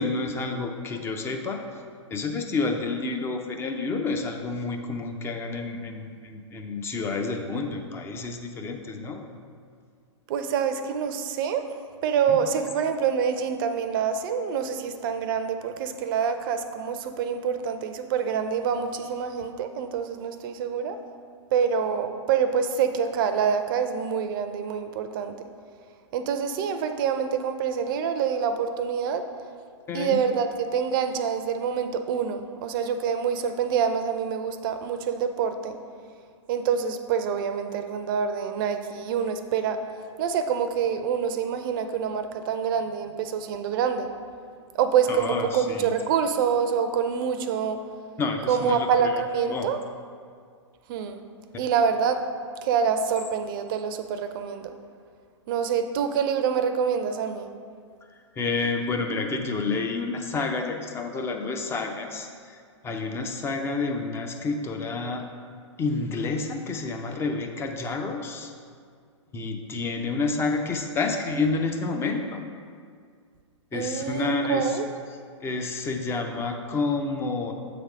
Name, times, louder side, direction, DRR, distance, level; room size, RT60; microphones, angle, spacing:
voice 1, 0.0-1.6 2.1-9.4 12.3-12.7 29.9-30.2 45.1-45.9 48.2-48.9 49.5-49.7 58.4-62.6 62.8-65.2 65.8-68.5 69.3-72.5 73.7-74.7 75.4-77.5, left 3 dB, 15° left, 4 dB, 0.5 m, -29 dB
voice 2, 10.3-11.6 12.0-21.0 21.5-25.3 26.1-29.3 29.9-35.8 36.5-39.8 40.2-44.1 44.7-47.8 48.5-49.8 50.9-51.2 51.6-52.2 52.6-54.7 55.5-57.5 73.7-74.8, right 7 dB, 45° right, 8 dB, 0.5 m, -26 dB
7.3 x 3.4 x 4.8 m, 2.1 s
hypercardioid pair, 120°, 16 cm